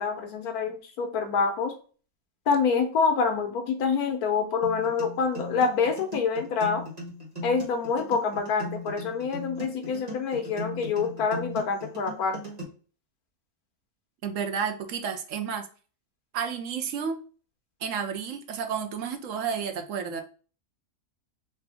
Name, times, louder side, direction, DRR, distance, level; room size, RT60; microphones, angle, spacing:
voice 1, 0.0-1.7 2.5-6.8 7.4-12.4, left 5 dB, 80° left, 5 dB, 1.4 m, -26 dB
sound 1, 4.6-12.6, equal, 30° right, 1.1 m, -38 dB
voice 2, 14.2-15.7 16.3-17.2 17.8-20.2, right 6 dB, 65° right, 6 dB, 1.0 m, -31 dB
4.3 x 2.7 x 3.4 m, 0.39 s
omnidirectional pair, 1.6 m